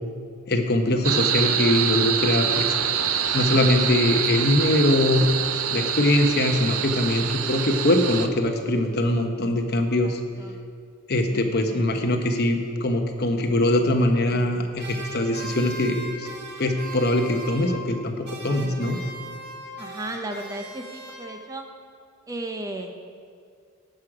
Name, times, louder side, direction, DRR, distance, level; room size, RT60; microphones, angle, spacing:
voice 1, 0.5-2.7 3.3-5.2 5.7-10.2 11.1-16.3 16.6-19.0, left 1 dB, 50° left, 4 dB, 1.0 m, -22 dB
sound 1, 1.0-8.3, right 8 dB, 85° right, 0.7 m, -25 dB
voice 2, 9.7-10.6 11.3-11.5 19.8-21.7 22.3-22.9, right 1 dB, 15° right, 4 dB, 0.7 m, -35 dB
sound 2, 14.8-18.0 18.2-21.6, right 2 dB, 50° right, 1.5 m, -39 dB
17.0 x 6.4 x 4.9 m, 2.2 s
head